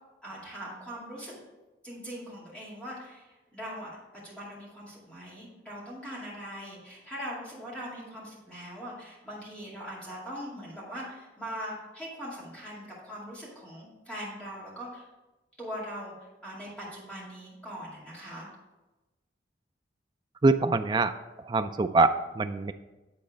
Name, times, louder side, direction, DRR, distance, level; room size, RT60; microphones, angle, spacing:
voice 1, 0.2-1.4 1.8-3.9 4.2-15.1 15.6-18.5, equal, 5° left, -7 dB, 2.4 m, -41 dB
voice 2, 20.4-21.1 21.5-22.7, right 3 dB, 25° right, 9 dB, 0.3 m, -24 dB
9.2 x 4.2 x 5.1 m, 1.1 s
head